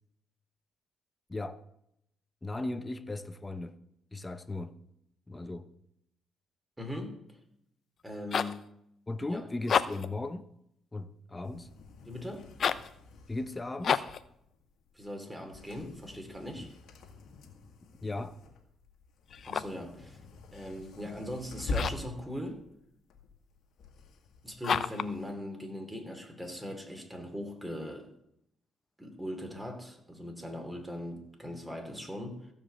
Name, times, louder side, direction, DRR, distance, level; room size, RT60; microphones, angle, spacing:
voice 1, 1.3-1.6 2.4-3.8 4.1-4.8 5.3-5.7 9.1-10.5 10.9-11.7 13.3-14.1 16.6-16.7 18.0-18.4, left 2 dB, 20° left, 0.9 m, -37 dB
voice 2, 6.8-7.2 8.0-8.7 9.3-9.4 12.0-12.5 14.9-16.7 19.5-20.2 20.5-22.6 24.4-28.1 29.0-32.5, left 1 dB, 10° right, 2.9 m, -40 dB
sound 1, 8.0-8.6 9.6-10.2 12.5-12.9 13.8-14.3 19.3-19.9 21.7-22.1 24.6-25.1, left 7 dB, 55° left, 0.5 m, -30 dB
sound 2, 11.4-25.3, left 3 dB, 75° left, 1.8 m, -45 dB
15.5 x 5.3 x 7.7 m
cardioid pair, 90°, 0 cm